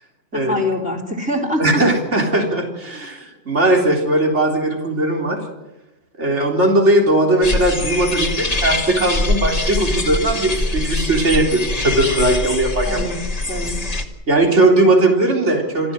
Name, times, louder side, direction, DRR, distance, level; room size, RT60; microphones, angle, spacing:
voice 1, 0.3-1.8 12.9-13.2 13.5-13.8, left 1 dB, 5° right, 0 dB, 3.7 m, -24 dB
voice 2, 1.6-5.4 6.2-13.1 14.3-15.9, right 2 dB, 65° right, 1 dB, 4.0 m, -18 dB
sound 1, 7.4-14.1, left 2 dB, 30° left, 1.9 m, -23 dB
27.0 x 14.5 x 7.8 m, 0.98 s
omnidirectional pair, 1.3 m